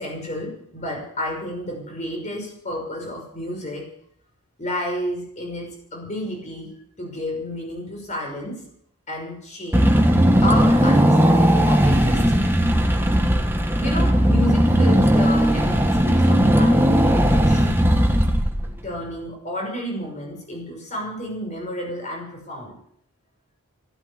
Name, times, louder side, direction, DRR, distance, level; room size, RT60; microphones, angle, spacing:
voice 1, 0.0-3.9 4.6-8.6 9.1-9.9 10.4-12.6 13.8-17.8 18.8-22.8, equal, 30° left, 1 dB, 5.8 m, -31 dB
Car / Engine, 9.7-18.9, equal, 10° right, 1.4 m, -17 dB
14.5 x 12.0 x 8.1 m, 0.67 s
head